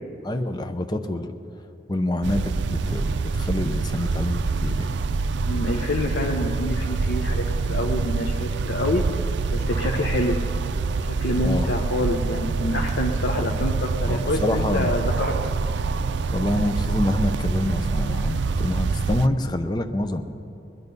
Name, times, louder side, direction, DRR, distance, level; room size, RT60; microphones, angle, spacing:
voice 1, 0.2-1.3 1.9-5.0 11.4-11.7 14.1-14.9 16.3-20.2, left 1 dB, 25° left, 7 dB, 0.7 m, -26 dB
sound 1, 2.2-19.3, right 4 dB, 75° right, 0.4 m, -25 dB
voice 2, 5.3-9.2 9.5-10.4 11.0-15.5, left 1 dB, 70° left, 0 dB, 0.9 m, -27 dB
21.0 x 10.5 x 5.4 m, 2.7 s
head